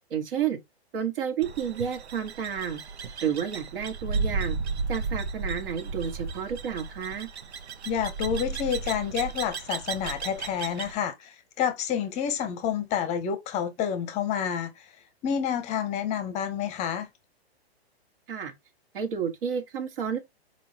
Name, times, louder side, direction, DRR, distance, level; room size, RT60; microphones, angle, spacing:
voice 1, 0.1-0.6 0.9-2.8 3.2-4.6 4.9-7.3 18.3-18.5 18.9-20.2, right 8 dB, 55° right, 1.5 m, -30 dB
sound 1, 1.4-10.9, right 4 dB, 80° right, 0.8 m, -34 dB
voice 2, 7.9-14.8 15.2-17.1, left 8 dB, 20° left, 0.8 m, -29 dB
4.7 x 3.7 x 2.8 m
hypercardioid pair, 135°, 32 cm